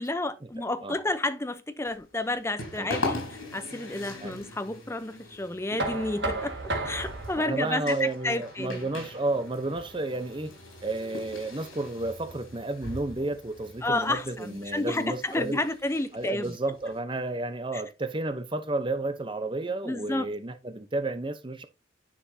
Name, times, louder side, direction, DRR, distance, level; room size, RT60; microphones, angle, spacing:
voice 1, 0.0-6.5 6.9-8.9 13.8-16.5 17.7-17.8 19.8-20.3, left 2 dB, 15° left, 0.6 m, -30 dB
sound 1, 1.8-17.0, left 2 dB, 90° left, 4.2 m, -41 dB
Knock, 5.8-11.6, right 2 dB, 55° right, 1.5 m, -36 dB
voice 2, 7.4-10.5 10.8-15.6 16.1-21.7, right 2 dB, 25° right, 0.7 m, -31 dB
10.0 x 5.1 x 2.7 m
head